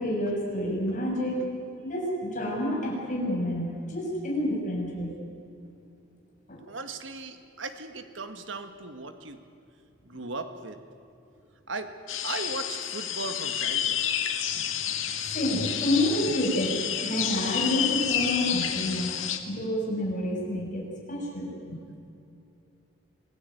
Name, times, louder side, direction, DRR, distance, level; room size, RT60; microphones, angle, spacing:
voice 1, 0.0-1.4 1.8-5.1 6.5-6.6 14.5-14.6 15.3-19.2 19.5-21.8, left 1 dB, 40° left, -2 dB, 7.3 m, -29 dB
voice 2, 6.7-9.4 10.0-10.8 11.7-11.9 12.2-14.0, right 3 dB, 65° right, 8 dB, 1.9 m, -37 dB
sound 1, 12.1-19.4, left 9 dB, 70° left, 2.0 m, -30 dB
26.0 x 17.0 x 9.5 m, 2.7 s
head